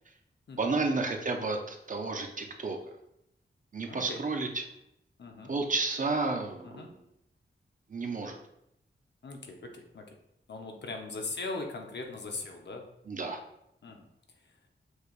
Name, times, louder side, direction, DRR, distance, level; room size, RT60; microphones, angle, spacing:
voice 1, 0.6-2.8 3.7-4.6 5.5-7.0 7.9-8.4 13.1-13.4, right 3 dB, 45° right, 3 dB, 0.6 m, -31 dB
voice 2, 3.9-4.2 5.2-5.5 6.6-6.9 9.2-10.1 10.5-12.8 13.8-14.1, left 3 dB, 65° left, 2 dB, 0.8 m, -40 dB
6.3 x 3.3 x 2.4 m, 0.79 s
wide cardioid pair, 110°, 19 cm